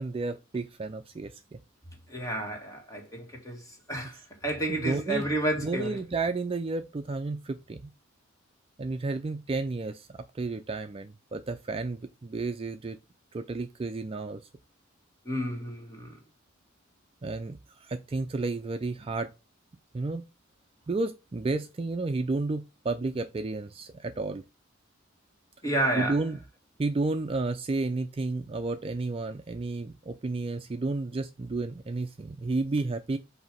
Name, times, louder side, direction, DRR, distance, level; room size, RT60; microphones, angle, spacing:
voice 1, 0.0-1.6 4.0-4.2 4.7-5.3 5.6-7.9 8.8-13.0 13.3-14.4 17.2-19.3 19.9-20.3 20.9-24.4 26.0-26.4 26.8-33.2, right 3 dB, 25° right, 0.4 m, -32 dB
voice 2, 2.1-3.6 3.9-4.1 4.4-6.0 15.3-16.1 25.6-26.2, right 1 dB, 15° left, 1.8 m, -30 dB
8.0 x 2.8 x 5.1 m
head